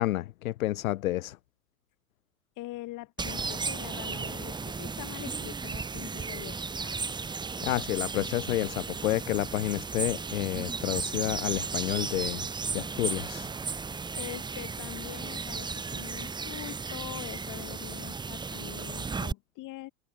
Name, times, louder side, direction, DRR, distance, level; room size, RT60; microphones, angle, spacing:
voice 1, 0.0-1.4 7.6-12.5 12.7-13.5, left 15 dB, 65° left, 1.6 m, -30 dB
voice 2, 2.6-7.2 13.8-19.9, left 18 dB, 45° left, 4.1 m, -43 dB
sound 1, 3.2-19.3, right 4 dB, 10° right, 0.8 m, -35 dB
open air
figure-of-eight pair, 85°, 44 cm